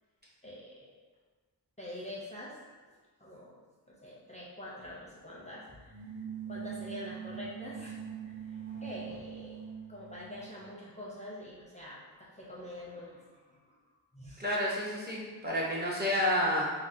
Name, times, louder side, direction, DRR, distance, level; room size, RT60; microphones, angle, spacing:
voice 1, 0.4-0.9 1.8-3.6 3.9-8.0 8.2-9.6 9.9-13.8 14.1-14.4, left 1 dB, 15° left, -6 dB, 0.5 m, -46 dB
sound 1, 5.8-10.6, right 8 dB, 75° right, 0.8 m, -43 dB
voice 2, 14.4-16.7, left 1 dB, 25° right, -6 dB, 0.6 m, -30 dB
4.0 x 2.0 x 2.5 m, 1.4 s
wide cardioid pair, 65°, 44 cm